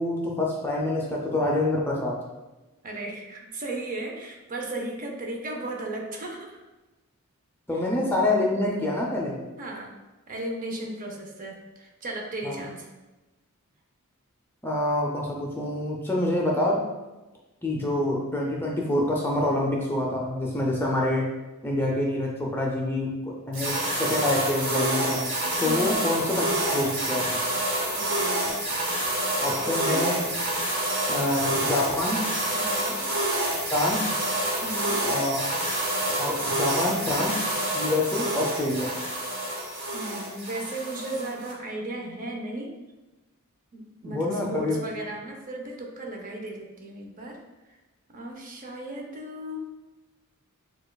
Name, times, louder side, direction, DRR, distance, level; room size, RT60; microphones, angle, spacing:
voice 1, 0.0-2.2 7.7-9.4 12.4-12.6 14.6-16.9 17.6-21.3 21.6-25.3 25.6-27.4 29.4-30.2 31.1-32.2 33.7-34.1 35.0-35.5 36.2-37.4 37.7-38.9 44.0-44.8, left 1 dB, 10° left, -2 dB, 0.4 m, -26 dB
voice 2, 2.8-6.6 7.7-7.8 9.6-9.9 10.3-12.9 25.6-26.0 27.9-28.5 29.5-30.1 32.6-33.0 34.6-35.0 39.9-42.7 43.7-47.4 48.1-49.6, right 1 dB, 40° right, 1 dB, 0.6 m, -35 dB
sound 1, 23.5-41.5, right 1 dB, 60° right, 1.4 m, -28 dB
6.6 x 2.3 x 2.2 m, 1.1 s
head